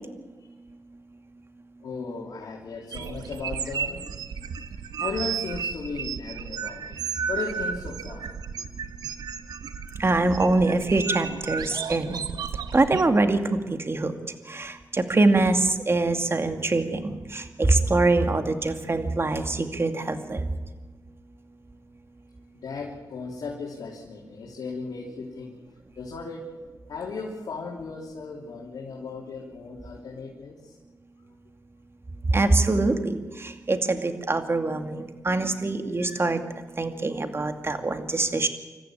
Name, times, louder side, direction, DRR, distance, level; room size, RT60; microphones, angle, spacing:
voice 1, 1.8-4.1 5.0-8.3 22.5-25.5 25.9-26.5 26.9-30.8, left 4 dB, 80° left, -2 dB, 3.3 m, -36 dB
sound 1, 2.9-13.0, right 6 dB, 85° right, 1.2 m, -33 dB
voice 2, 9.9-12.2 12.7-14.1 14.5-20.5 32.3-36.4 36.8-38.5, right 2 dB, 40° right, 7 dB, 2.4 m, -24 dB
26.0 x 14.0 x 8.9 m, 1.3 s
cardioid pair, 55°, 7 cm